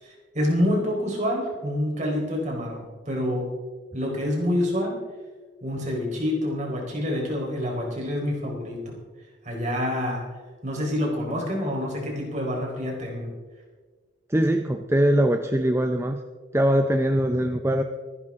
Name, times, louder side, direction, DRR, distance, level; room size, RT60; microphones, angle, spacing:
voice 1, 0.0-3.5 3.9-5.0 5.6-9.0 9.4-10.3 10.6-13.3, left 1 dB, 40° right, -1 dB, 4.2 m, -27 dB
voice 2, 14.3-16.2 16.5-17.8, right 1 dB, 15° right, 6 dB, 0.5 m, -22 dB
24.0 x 11.0 x 3.7 m, 1.4 s
head